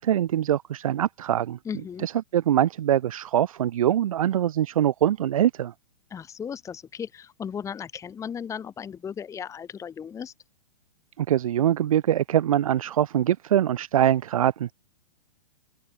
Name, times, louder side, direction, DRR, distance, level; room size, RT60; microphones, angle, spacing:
voice 1, 0.0-1.6 2.0-5.7 11.2-14.7, right 11 dB, 60° right, 1.5 m, -23 dB
voice 2, 1.6-2.1 6.1-10.3, left 7 dB, 15° left, 1.7 m, -36 dB
figure-of-eight pair, 110°, 20 cm